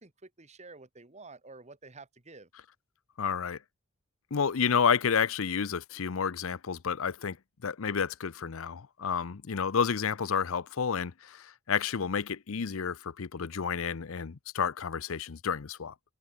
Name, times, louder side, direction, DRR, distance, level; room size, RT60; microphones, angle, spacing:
voice 1, 0.0-2.5, right 3 dB, 30° right, 1.7 m, -50 dB
voice 2, 3.2-3.6 4.3-7.4 7.6-15.9, left 6 dB, 75° left, 0.6 m, -30 dB
head